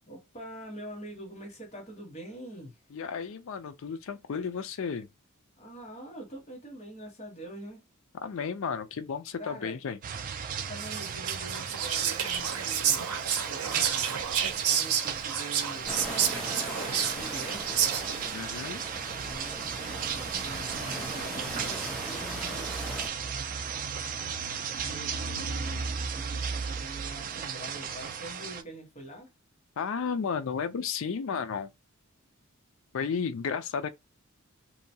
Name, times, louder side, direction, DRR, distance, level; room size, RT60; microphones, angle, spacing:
voice 1, 0.1-2.8 5.6-7.8 9.4-9.8 10.6-13.1 13.4-14.3 14.7-16.0 17.1-18.2 19.2-22.8 24.8-29.3, right 1 dB, 30° left, 1.1 m, -44 dB
voice 2, 2.9-5.1 8.2-10.0 18.3-18.8 29.8-31.7 32.9-33.9, left 6 dB, 65° left, 0.4 m, -33 dB
sound 1, 10.0-28.6, right 6 dB, 40° right, 0.3 m, -35 dB
Whispering, 10.8-18.3, right 8 dB, 85° right, 0.6 m, -30 dB
sound 2, 15.9-23.1, equal, 5° left, 0.8 m, -39 dB
2.8 x 2.2 x 2.7 m
head